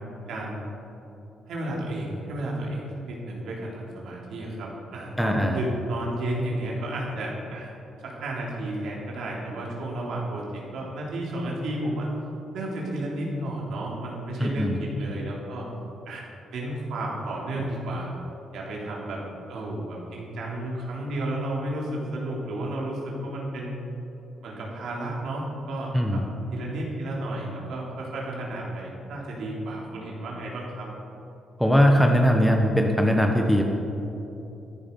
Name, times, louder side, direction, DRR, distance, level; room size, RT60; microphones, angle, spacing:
voice 1, 0.3-0.7 1.5-7.7 8.0-12.1 12.5-15.7 16.1-16.2 16.5-18.1 18.5-19.2 19.5-23.8 24.4-30.9, right 1 dB, 75° right, -3 dB, 3.6 m, -32 dB
voice 2, 5.2-5.6 14.4-14.8 25.9-26.2 31.6-33.6, equal, ahead, 1 dB, 1.2 m, -20 dB
14.0 x 11.0 x 5.5 m, 2.9 s
cardioid pair, 90°, 0 cm